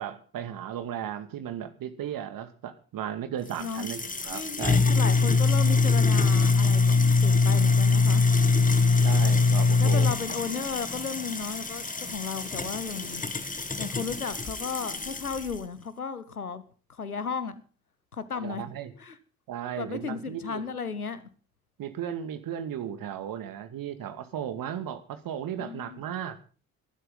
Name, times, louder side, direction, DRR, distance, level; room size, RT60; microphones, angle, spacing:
voice 1, 0.0-4.9 9.0-10.1 18.3-18.9 19.5-20.6 21.8-26.4, right 9 dB, 50° right, 10 dB, 2.2 m, -35 dB
sound 1, 3.5-15.5, left 4 dB, 20° left, 2.1 m, -23 dB
voice 2, 3.6-3.9 4.3-8.2 9.8-13.2 13.8-16.6 16.9-17.6 18.1-18.6 19.0-19.2 19.8-21.2 25.6-26.0, left 5 dB, 90° left, 15 dB, 1.1 m, -34 dB
sound 2, 8.4-15.1, equal, 90° right, 4.5 m, -50 dB
21.5 x 12.5 x 3.9 m, 0.38 s
figure-of-eight pair, 45°, 43 cm